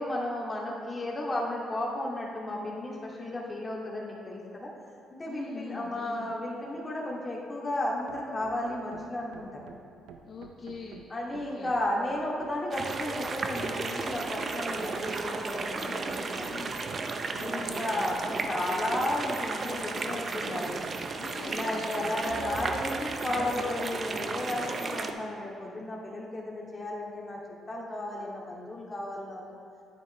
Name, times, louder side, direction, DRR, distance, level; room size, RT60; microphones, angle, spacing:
voice 1, 0.0-4.7 5.1-9.6 11.1-16.7 17.4-20.9 21.5-27.4 27.7-29.4, left 1 dB, 25° left, -4 dB, 2.3 m, -33 dB
voice 2, 5.3-6.3 10.3-11.7 16.4-16.8 17.3-18.1 21.1-22.7, left 5 dB, 55° left, 1 dB, 0.6 m, -44 dB
sound 1, 7.7-18.6, right 6 dB, 85° right, 0.5 m, -50 dB
sound 2, 12.7-25.1, right 4 dB, 45° right, 0.7 m, -34 dB
10.0 x 9.1 x 3.3 m, 2.3 s
supercardioid pair, 65°, 0 cm